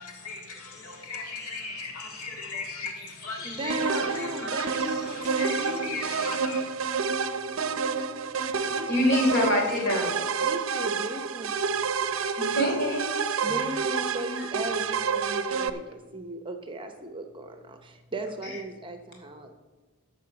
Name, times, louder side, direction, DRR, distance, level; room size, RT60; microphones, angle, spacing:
voice 1, 0.0-4.7 5.1-6.7, left 3 dB, 90° left, 1 dB, 1.9 m, -38 dB
voice 2, 1.2-2.5 3.2-3.6 8.9-10.1 12.4-13.3, equal, 50° left, -1 dB, 3.4 m, -27 dB
voice 3, 3.4-6.1 8.7-9.1 10.4-11.5 13.4-19.5, right 1 dB, 25° right, 6 dB, 0.9 m, -36 dB
sound 1, 3.7-15.7, right 5 dB, 65° right, 0.6 m, -29 dB
13.5 x 6.2 x 5.9 m, 1.3 s
head